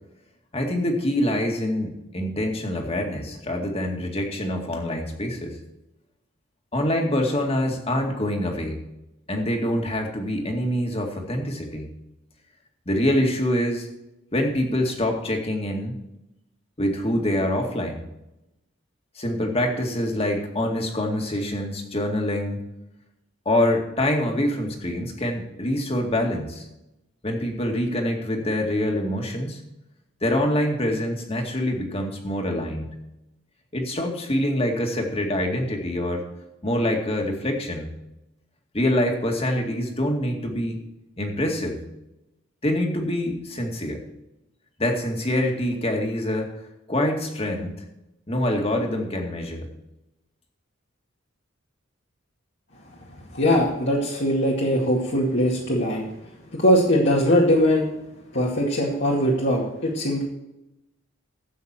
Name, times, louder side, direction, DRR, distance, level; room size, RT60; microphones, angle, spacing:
voice 1, 0.5-5.6 6.7-8.8 9.3-11.9 12.9-13.9 14.3-15.9 16.8-18.0 19.2-22.6 23.5-26.7 27.2-29.6 30.2-32.9 33.7-36.3 36.6-37.9 38.7-40.8 41.2-41.8 42.6-44.0 44.8-46.5 46.9-47.7 48.3-49.7, left 1 dB, 30° left, 2 dB, 2.2 m, -25 dB
voice 2, 53.3-56.1 56.5-57.9 58.3-60.2, equal, 60° left, -5 dB, 2.3 m, -21 dB
13.0 x 8.4 x 4.4 m, 0.90 s
head